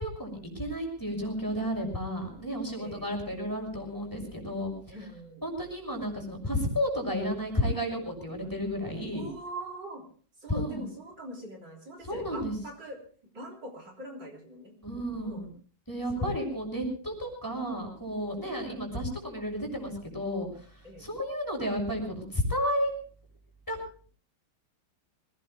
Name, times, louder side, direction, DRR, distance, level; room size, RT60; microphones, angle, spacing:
voice 1, 0.0-5.0 5.4-9.3 10.5-10.8 12.0-12.5 14.8-15.5 15.9-20.7 21.0-22.9 23.7-23.8, equal, 10° left, 2 dB, 6.6 m, -32 dB
voice 2, 2.8-3.2 4.9-5.4 9.1-10.0 10.4-13.0 13.3-14.7 15.2-15.4 16.2-16.3 20.8-21.1, right 1 dB, 60° right, 0 dB, 4.2 m, -43 dB
26.5 x 19.0 x 2.2 m, 0.43 s
omnidirectional pair, 2.2 m